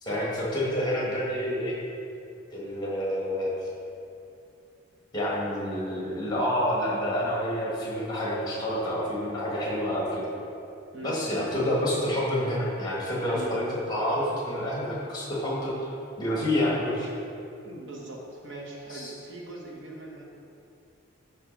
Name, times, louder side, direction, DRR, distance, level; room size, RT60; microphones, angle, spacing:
voice 1, 0.0-1.8 2.5-3.5 5.1-10.2 11.0-15.9 16.2-17.1 18.9-19.1, equal, 20° left, -5 dB, 1.3 m, -28 dB
voice 2, 10.9-11.7 13.2-13.6 17.6-20.2, right 1 dB, 55° right, -3 dB, 1.1 m, -41 dB
9.1 x 3.1 x 5.1 m, 2.6 s
head